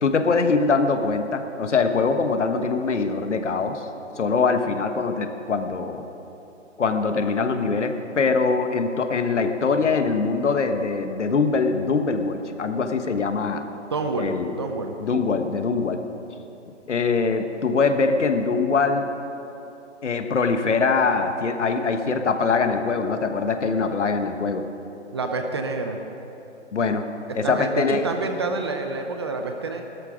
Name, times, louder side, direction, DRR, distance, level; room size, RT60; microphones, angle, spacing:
voice 1, 0.0-3.9 4.2-6.0 6.8-13.6 14.2-14.6 15.0-16.0 16.9-19.1 20.0-24.6 26.7-27.1 27.3-28.1, left 4 dB, 75° left, 7 dB, 1.4 m, -23 dB
voice 2, 13.9-14.9 25.1-26.0 27.4-29.8, right 3 dB, 20° right, 5 dB, 0.6 m, -28 dB
15.0 x 13.0 x 5.1 m, 2.9 s
hypercardioid pair, 155°, 36 cm